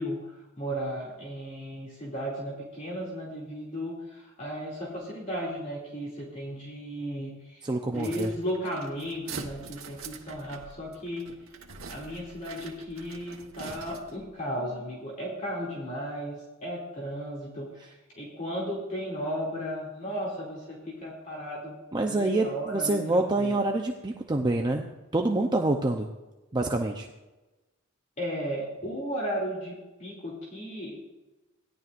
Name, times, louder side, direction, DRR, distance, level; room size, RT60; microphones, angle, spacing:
voice 1, 0.0-7.6 7.9-11.2 11.9-17.7 18.1-21.8 22.1-23.6 28.2-31.0, equal, 35° left, -4 dB, 2.6 m, -35 dB
voice 2, 7.6-8.3 21.9-24.9 25.1-26.1 26.5-27.1, right 2 dB, 20° right, 2 dB, 0.6 m, -26 dB
sound 1, 7.9-14.3, right 5 dB, 85° right, 1.3 m, -44 dB
17.0 x 11.0 x 2.5 m, 1.1 s
head